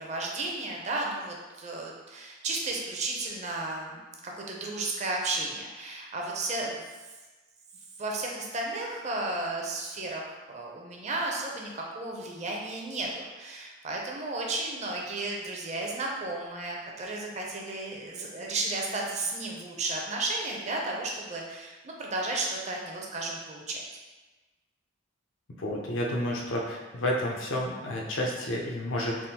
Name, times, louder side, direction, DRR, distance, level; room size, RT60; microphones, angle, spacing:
voice 1, 0.0-6.8 8.0-23.8, right 2 dB, 35° right, -1 dB, 0.5 m, -33 dB
voice 2, 25.6-29.2, left 1 dB, 75° left, -1 dB, 0.6 m, -30 dB
3.5 x 2.4 x 2.7 m, 1.2 s
head